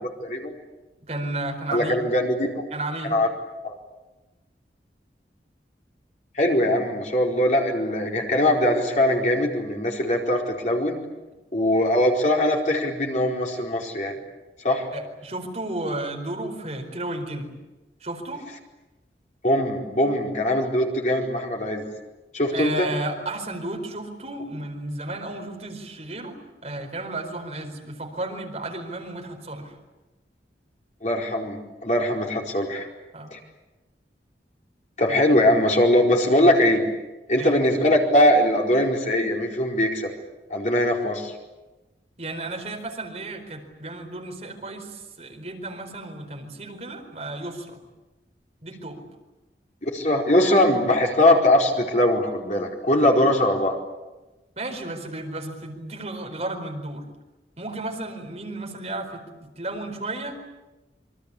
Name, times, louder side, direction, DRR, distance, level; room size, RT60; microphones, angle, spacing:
voice 1, 0.2-0.5 1.7-2.6 3.1-3.3 3.6-3.8 6.3-11.0 11.5-14.2 14.6-14.9 19.4-21.9 22.3-22.9 31.0-32.9 33.3-33.4 35.0-36.8 37.3-40.1 40.5-41.3 49.8-53.8, left 1 dB, 40° left, 0 dB, 4.6 m, -21 dB
voice 2, 1.0-2.0 2.7-3.2 14.9-17.5 18.0-18.4 22.5-26.4 26.6-29.8 33.1-33.3 37.4-37.6 42.2-47.8 48.6-49.0 54.6-57.1 57.6-60.4, right 2 dB, 40° right, 3 dB, 4.5 m, -33 dB
27.5 x 24.0 x 8.6 m, 1.1 s
head